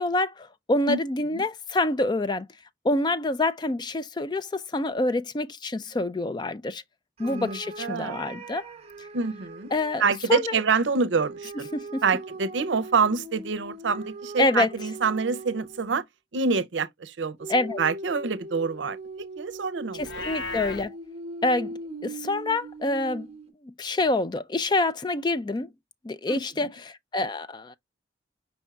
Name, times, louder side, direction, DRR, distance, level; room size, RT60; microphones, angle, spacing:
voice 1, 0.0-2.5 2.8-6.8 7.2-8.6 9.0-9.1 9.7-10.0 10.3-10.5 11.7-12.0 14.4-14.7 17.5-17.8 19.9-20.9 21.4-21.7 22.0-23.3 23.6-25.7 26.0-27.8, left 2 dB, 25° left, 0.4 m, -26 dB
sound 1, 7.2-10.2 11.2-16.0 17.4-23.5, right 2 dB, 35° right, 0.8 m, -40 dB
voice 2, 7.2-8.2 9.1-9.7 10.0-11.7 12.0-16.0 16.3-17.5 17.8-20.3 26.3-26.4, right 5 dB, 85° right, 0.6 m, -26 dB
Livestock farm animals working animals, 20.0-20.9, left 3 dB, 80° left, 0.9 m, -34 dB
5.3 x 4.3 x 2.3 m
head